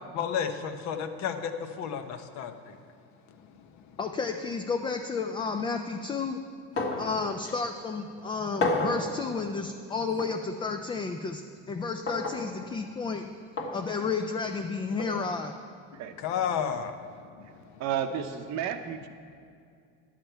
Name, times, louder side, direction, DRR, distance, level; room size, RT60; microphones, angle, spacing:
voice 1, 0.1-2.8 6.9-7.0 16.2-17.5, left 7 dB, 55° left, 8 dB, 0.8 m, -32 dB
voice 2, 4.0-6.4 7.0-11.4 11.7-13.3 13.7-15.6, left 4 dB, 15° left, 5 dB, 0.3 m, -31 dB
sound 1, 6.8-7.1 7.4-7.5 8.6-9.0 10.2-10.3 12.1-12.4 13.6-13.8 15.0-15.1, left 2 dB, 40° left, 1.4 m, -29 dB
voice 3, 17.8-19.1, right 8 dB, 55° right, 8 dB, 0.7 m, -31 dB
10.5 x 7.4 x 4.5 m, 2.3 s
supercardioid pair, 110°, 33 cm